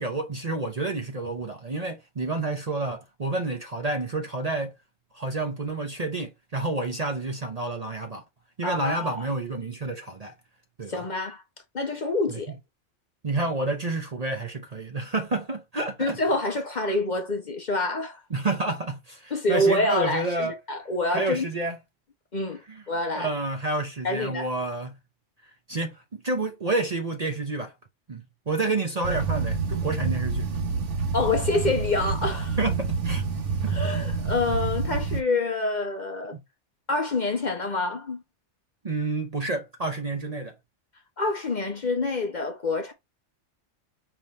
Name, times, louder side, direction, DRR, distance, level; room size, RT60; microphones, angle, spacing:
voice 1, 0.0-4.7 5.1-8.2 8.6-10.3 10.8-11.0 12.3-12.4 13.2-16.2 18.3-20.6 21.1-21.8 22.7-22.8 23.1-25.0 25.7-27.7 28.1-30.5 32.6-33.2 36.3-36.4 38.8-40.5, right 2 dB, 40° right, 0.8 m, -29 dB
voice 2, 8.6-9.3 10.9-11.4 11.7-12.5 16.0-18.2 19.3-21.5 22.3-23.3 24.0-24.5 31.1-32.6 33.7-36.4 36.9-38.2 41.2-42.9, left 2 dB, 40° left, 0.9 m, -27 dB
sound 1, 29.0-35.2, right 4 dB, 70° right, 1.3 m, -28 dB
5.4 x 3.0 x 3.0 m
omnidirectional pair, 1.3 m